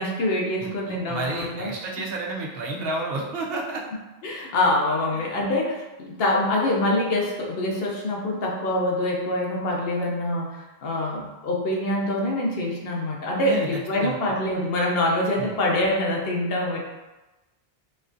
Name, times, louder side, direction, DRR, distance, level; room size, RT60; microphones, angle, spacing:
voice 1, 0.0-1.7 4.2-16.8, left 1 dB, 70° left, -1 dB, 0.9 m, -25 dB
voice 2, 0.6-3.8 5.1-5.3 13.5-13.7 13.9-14.2 15.4-15.5, right 2 dB, 70° right, -1 dB, 0.8 m, -31 dB
4.2 x 2.3 x 2.6 m, 1.1 s
omnidirectional pair, 1.0 m